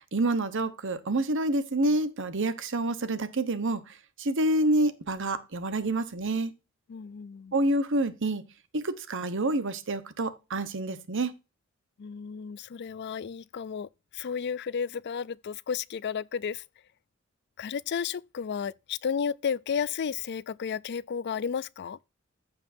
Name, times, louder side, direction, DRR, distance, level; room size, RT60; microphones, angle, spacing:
voice 1, 0.0-6.5 7.5-8.4 8.7-11.3, right 2 dB, 65° right, 1.0 m, -28 dB
voice 2, 6.9-7.5 12.0-16.6 17.6-22.0, left 7 dB, 55° left, 0.4 m, -33 dB
15.0 x 5.4 x 2.6 m
head